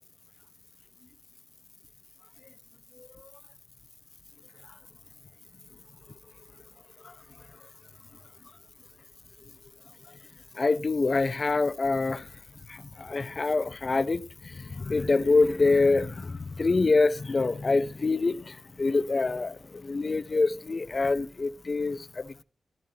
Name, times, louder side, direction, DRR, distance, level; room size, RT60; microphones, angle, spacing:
voice 1, 3.0-3.3 7.0-7.1 10.5-12.3 12.7-22.4, left 3 dB, 30° left, 0.5 m, -26 dB
16.0 x 11.5 x 2.8 m
wide cardioid pair, 155°, 0 cm